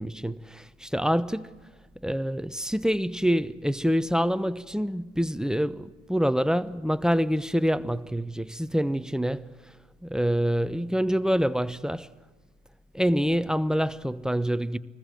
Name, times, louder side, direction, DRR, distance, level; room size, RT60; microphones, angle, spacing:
voice 1, 0.0-1.5 2.0-9.5 10.0-12.1 12.9-14.8, equal, ahead, 0.9 m, -26 dB
25.5 x 20.0 x 7.7 m
figure-of-eight pair, 55°, 37 cm